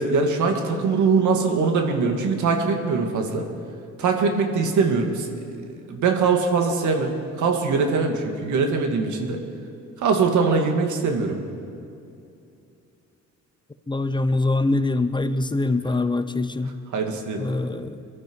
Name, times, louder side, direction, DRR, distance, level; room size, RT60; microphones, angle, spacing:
voice 1, 0.0-3.5 4.0-5.6 5.9-9.4 10.0-11.4 16.9-17.5, right 4 dB, 75° right, 3 dB, 2.1 m, -22 dB
voice 2, 13.9-16.7 17.4-18.1, left 2 dB, 15° left, 11 dB, 0.8 m, -24 dB
23.0 x 12.5 x 4.7 m, 2.6 s
cardioid pair, 90°, 30 cm